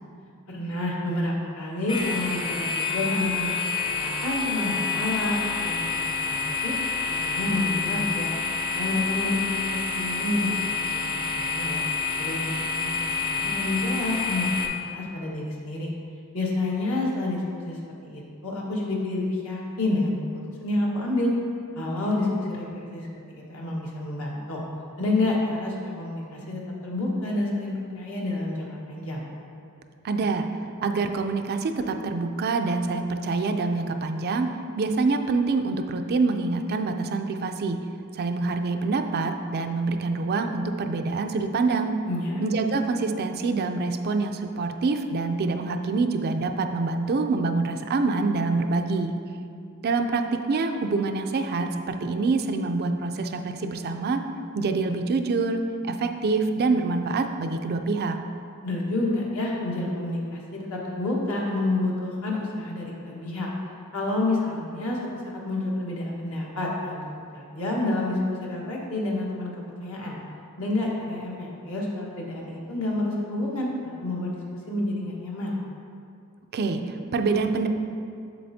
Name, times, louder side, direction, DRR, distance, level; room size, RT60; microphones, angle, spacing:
voice 1, 0.5-6.7 7.1-8.3 8.7-10.6 10.9-11.8 12.2-15.9 16.3-17.8 18.1-20.3 20.6-21.3 21.7-23.1 23.3-24.6 25.0-29.2 42.1-42.4 58.6-63.5 63.9-67.0 67.3-70.2 70.6-74.4 74.7-75.6, left 2 dB, 70° left, -3 dB, 1.4 m, -29 dB
sound 1, 1.9-14.7, left 5 dB, 25° left, 0.6 m, -28 dB
voice 2, 30.0-30.5 30.8-34.5 34.8-37.8 38.1-41.9 42.4-49.2 49.8-54.2 54.6-58.2 76.5-77.7, right 3 dB, 45° right, 6 dB, 0.4 m, -26 dB
7.6 x 7.2 x 2.7 m, 2.4 s
head